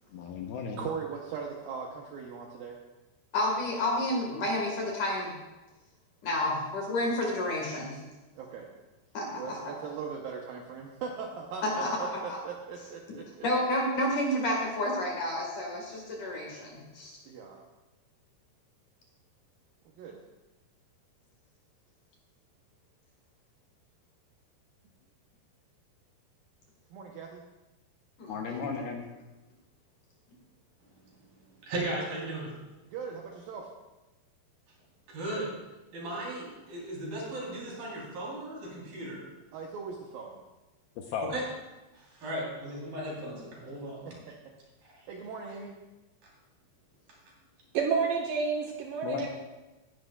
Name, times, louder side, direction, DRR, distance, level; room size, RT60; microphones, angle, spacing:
voice 1, 0.1-0.9 28.3-29.1 41.0-41.3 49.0-49.3, left 6 dB, 75° left, 2 dB, 2.4 m, -35 dB
voice 2, 0.8-2.8 8.4-8.7 9.4-13.5 17.2-17.6 20.0-20.2 26.9-27.4 32.9-33.7 39.5-40.4 44.1-44.2 45.1-45.8, right 6 dB, 75° right, 0 dB, 2.2 m, -39 dB
voice 3, 3.3-5.3 6.2-8.0 9.1-9.7 11.6-12.4 13.4-17.2 28.2-28.7, left 1 dB, 55° left, -1 dB, 2.7 m, -30 dB
voice 4, 30.8-31.3 31.6-32.6 35.1-35.6 35.9-39.2 41.2-41.5 41.9-44.0 44.8-45.1, right 1 dB, 55° right, -4 dB, 5.0 m, -37 dB
voice 5, 47.7-49.3, right 5 dB, 90° right, 1 dB, 1.9 m, -29 dB
18.5 x 11.0 x 2.3 m, 1.1 s
omnidirectional pair, 5.0 m